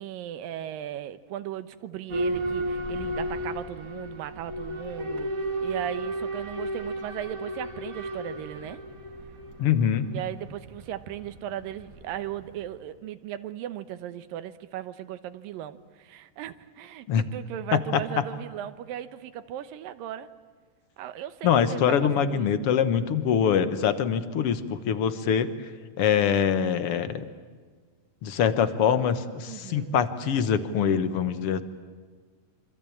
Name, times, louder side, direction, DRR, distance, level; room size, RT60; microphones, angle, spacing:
voice 1, 0.0-5.3 5.6-8.8 10.1-20.3 21.0-22.5 29.5-30.0, right 11 dB, 85° right, 12 dB, 2.8 m, -37 dB
Boat Water vehicle / Alarm, 2.1-12.7, right 1 dB, 25° right, 2.3 m, -34 dB
voice 2, 9.6-10.1 17.1-17.2 17.7-18.0 21.4-25.5 26.0-27.2 28.2-31.6, left 8 dB, 55° left, 11 dB, 1.7 m, -24 dB
27.0 x 26.0 x 8.6 m, 1.5 s
omnidirectional pair, 3.9 m